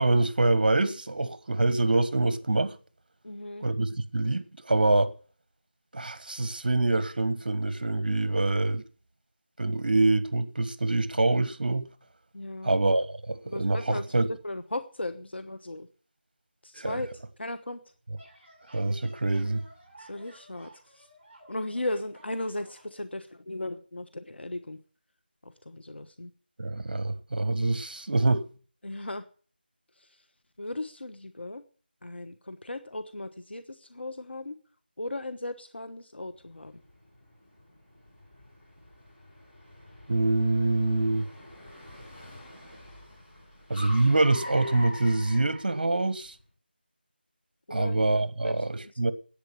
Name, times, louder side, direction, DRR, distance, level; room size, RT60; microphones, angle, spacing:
voice 1, 0.0-2.7 3.6-5.1 5.9-8.8 9.6-11.9 12.6-14.3 16.8-17.0 18.7-19.6 26.6-28.4 40.1-41.3 43.7-46.3 47.7-49.1, right 2 dB, 55° right, 1.4 m, -25 dB
voice 2, 3.2-3.7 12.3-12.8 13.4-14.1 14.4-15.9 16.6-17.1 17.4-17.8 20.0-21.1 21.5-24.8 25.4-26.3 28.8-29.2 30.0-30.1 30.6-31.6 32.0-34.6 35.0-36.8 47.7-48.0 48.4-48.9, left 2 dB, 80° left, 1.3 m, -37 dB
sound 1, 17.9-22.9, right 1 dB, 15° right, 6.9 m, -55 dB
Car, 36.5-46.3, left 1 dB, 15° left, 5.1 m, -46 dB
10.5 x 9.0 x 8.8 m
figure-of-eight pair, 170°, 6 cm